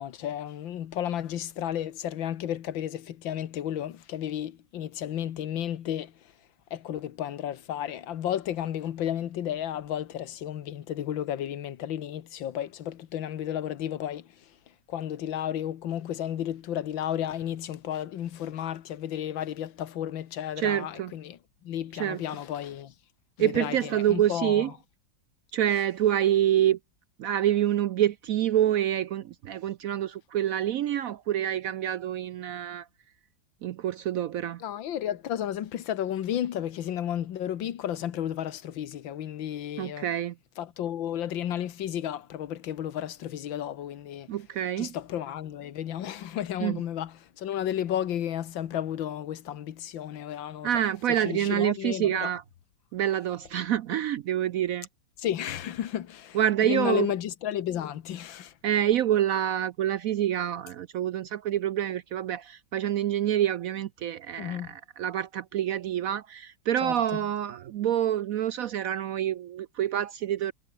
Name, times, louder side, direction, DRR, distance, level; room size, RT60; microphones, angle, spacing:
voice 1, 0.0-6.3 6.7-14.6 14.9-22.9 23.4-24.7 34.6-40.1 40.6-44.3 44.8-50.7 51.1-52.3 55.2-58.5 64.4-64.7 66.8-66.9, left 10 dB, 90° left, 1.9 m, -33 dB
voice 2, 20.6-21.1 22.0-22.2 23.4-24.7 25.5-26.8 27.2-32.9 33.6-34.6 39.8-40.3 44.3-44.9 46.6-46.8 50.6-52.4 52.9-54.9 56.3-57.1 58.6-70.5, right 11 dB, 75° right, 0.8 m, -27 dB
omnidirectional pair, 2.0 m